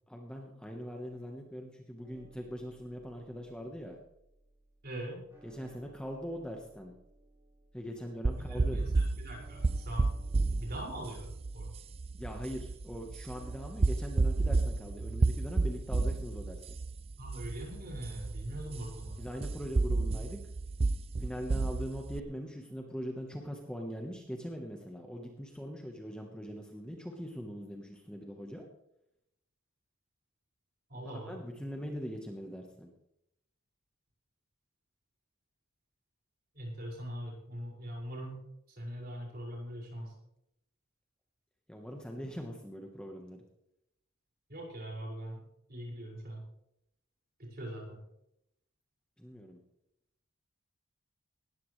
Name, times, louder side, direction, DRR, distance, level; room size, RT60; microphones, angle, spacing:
voice 1, 0.1-4.0 5.4-6.9 7.7-8.8 12.1-16.8 18.7-18.8 19.2-20.4 21.2-28.7 31.0-32.9 41.7-43.4 49.2-49.6, equal, 5° left, 2 dB, 1.1 m, -41 dB
sound 1, 2.0-16.0, right 2 dB, 10° right, 5.7 m, -62 dB
voice 2, 4.8-5.2 8.5-10.1 10.6-11.3 11.5-11.7 17.2-19.2 30.9-31.4 36.5-40.1 44.5-45.4 45.7-46.4 47.4-48.0, right 1 dB, 45° right, -2 dB, 5.5 m, -42 dB
sound 2, 8.2-22.2, right 3 dB, 30° right, 0.4 m, -32 dB
19.0 x 14.0 x 3.2 m, 0.80 s
head